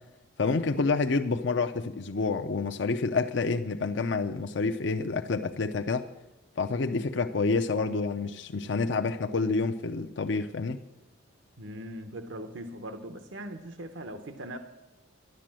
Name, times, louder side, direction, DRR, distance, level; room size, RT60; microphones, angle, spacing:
voice 1, 0.4-6.0 6.6-10.8, left 4 dB, 65° left, 6 dB, 0.6 m, -28 dB
voice 2, 11.6-14.6, right 1 dB, 75° right, 7 dB, 0.9 m, -40 dB
12.0 x 11.0 x 7.5 m, 1.0 s
head